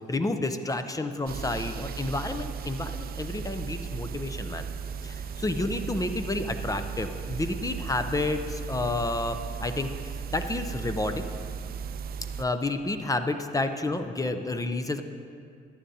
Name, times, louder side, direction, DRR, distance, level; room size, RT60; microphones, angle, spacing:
voice 1, 0.1-4.7 5.0-11.3 12.4-15.0, left 2 dB, 15° left, 8 dB, 0.6 m, -30 dB
sound 1, 1.3-12.4, right 6 dB, 50° right, 0.4 m, -36 dB
13.5 x 10.0 x 2.8 m, 2.3 s
cardioid pair, 90°, 20 cm